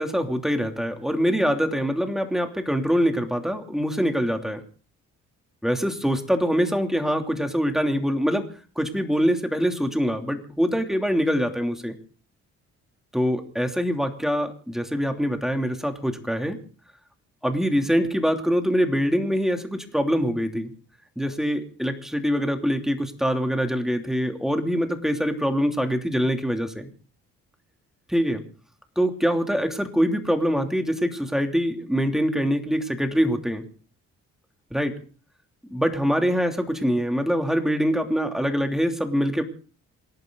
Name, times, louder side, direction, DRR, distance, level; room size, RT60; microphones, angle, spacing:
voice 1, 0.0-4.6 5.6-8.5 8.8-11.9 13.1-16.6 17.4-20.7 21.2-26.9 28.1-28.4 29.0-33.6 34.7-34.9 35.7-39.4, equal, ahead, 5 dB, 3.0 m, -24 dB
28.0 x 11.5 x 4.0 m, 0.40 s
cardioid pair, 90°, 30 cm